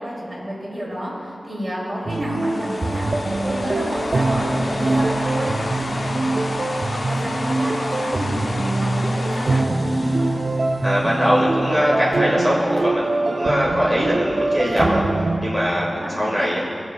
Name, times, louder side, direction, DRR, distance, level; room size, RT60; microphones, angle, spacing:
voice 1, 0.0-3.1 3.4-10.3 15.6-16.5, equal, 35° right, -5 dB, 2.5 m, -30 dB
sound 1, 2.1-11.3, left 2 dB, 50° left, 0.5 m, -31 dB
sound 2, 2.1-15.4, right 2 dB, 55° right, 0.4 m, -23 dB
voice 2, 10.8-15.0 15.4-16.6, equal, 10° left, -6 dB, 1.5 m, -21 dB
19.0 x 7.0 x 2.2 m, 2.4 s
wide cardioid pair, 90°, 0 cm